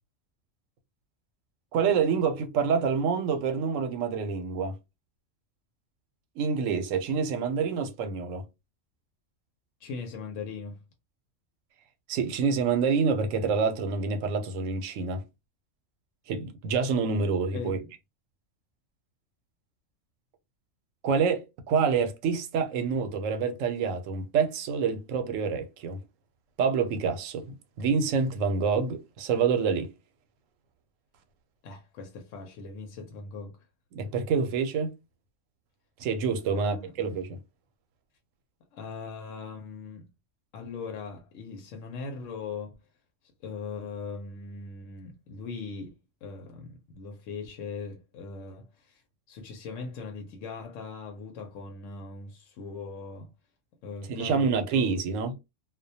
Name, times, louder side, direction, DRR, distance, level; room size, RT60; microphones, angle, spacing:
voice 1, 1.7-4.7 6.4-8.4 12.1-15.2 16.3-17.8 21.0-26.0 26.6-29.9 33.9-34.9 36.0-37.4 54.1-55.3, right 5 dB, 85° right, 1.0 m, -27 dB
voice 2, 9.8-10.8 17.5-17.9 31.6-33.6 36.5-36.9 38.7-40.1 40.5-42.7 43.4-49.0 49.3-53.3 53.8-55.0, left 4 dB, 80° left, 0.9 m, -40 dB
2.2 x 2.1 x 2.7 m
omnidirectional pair, 1.3 m